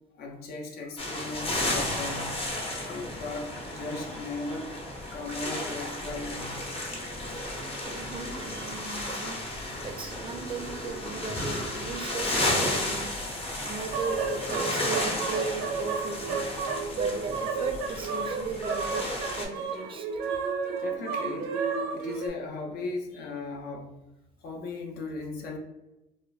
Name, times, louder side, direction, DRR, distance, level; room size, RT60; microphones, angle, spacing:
voice 1, 0.1-2.5 2.8-4.7 5.1-6.6 20.8-21.5 21.9-24.0 24.4-25.6, left 3 dB, 70° left, 2 dB, 0.6 m, -37 dB
sound 1, 1.0-19.4, left 1 dB, 35° left, 0.7 m, -33 dB
voice 2, 7.0-9.6 9.8-16.5 16.9-19.1 19.3-20.2, right 5 dB, 30° right, 6 dB, 0.4 m, -37 dB
sound 2, 13.9-22.3, right 5 dB, 85° right, 0.6 m, -32 dB
3.1 x 2.0 x 2.3 m, 0.98 s
cardioid pair, 110°, 17 cm